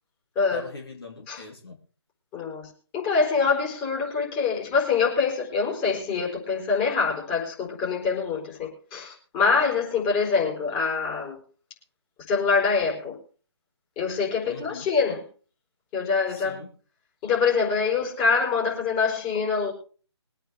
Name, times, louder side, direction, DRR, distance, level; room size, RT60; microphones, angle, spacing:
voice 1, 0.5-1.8 14.5-14.9 16.3-16.7, left 2 dB, 55° left, 3.1 m, -40 dB
voice 2, 2.3-11.4 12.3-13.2 14.0-15.2 15.9-16.6 17.2-19.7, left 5 dB, 20° left, 4.5 m, -25 dB
23.0 x 8.9 x 3.5 m
figure-of-eight pair, 145°, 15 cm